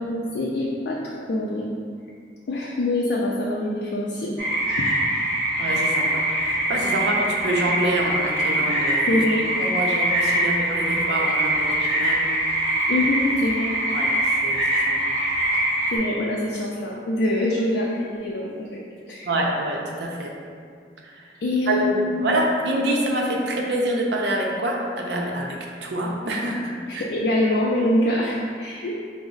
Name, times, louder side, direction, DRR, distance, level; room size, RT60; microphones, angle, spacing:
voice 1, 0.1-1.0 1.3-1.7 2.5-4.3 9.1-9.4 12.9-13.7 15.9-18.8 19.1-19.3 21.4-22.4 26.9-29.0, left 1 dB, 70° left, -3 dB, 0.4 m, -24 dB
sound 1, 4.4-16.0, right 1 dB, 30° right, 1.5 m, -23 dB
voice 2, 5.6-9.3 9.6-12.4 13.9-15.0 19.2-20.3 21.0-21.3 21.7-27.1, right 1 dB, 75° right, -1 dB, 0.6 m, -26 dB
4.9 x 2.0 x 3.8 m, 2.2 s
head